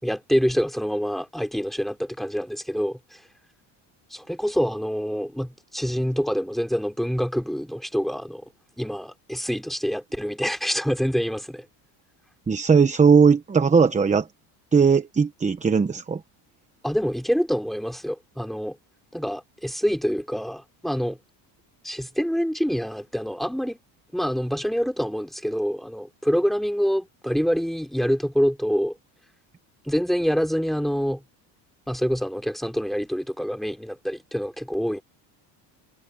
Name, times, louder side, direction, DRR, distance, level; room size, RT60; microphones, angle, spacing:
voice 1, 0.0-3.2 4.1-8.4 8.8-11.6 16.8-18.8 19.1-21.2 21.8-23.8 24.1-29.0 29.8-31.2 31.9-35.0, equal, ahead, 3.4 m, -26 dB
voice 2, 12.5-14.3 14.7-16.2, right 5 dB, 15° right, 1.0 m, -18 dB
cardioid pair, 135°, 46 cm